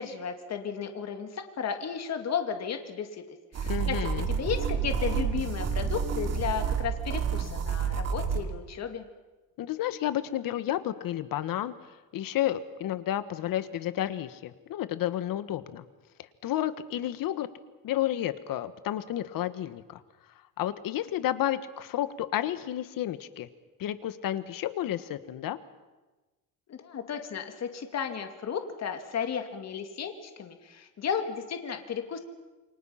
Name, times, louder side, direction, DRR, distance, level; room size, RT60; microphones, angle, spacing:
voice 1, 0.0-3.2 3.5-9.0 26.7-32.2, left 7 dB, 45° left, 6 dB, 2.4 m, -34 dB
sound 1, 3.5-8.4, right 6 dB, 45° right, 2.6 m, -29 dB
voice 2, 3.6-4.3 9.6-11.7 12.1-15.8 16.4-17.5 17.8-20.0 20.6-23.5 23.8-25.6, left 12 dB, 70° left, 13 dB, 1.4 m, -31 dB
28.5 x 24.0 x 5.8 m, 1.2 s
cardioid pair, 145°, 35 cm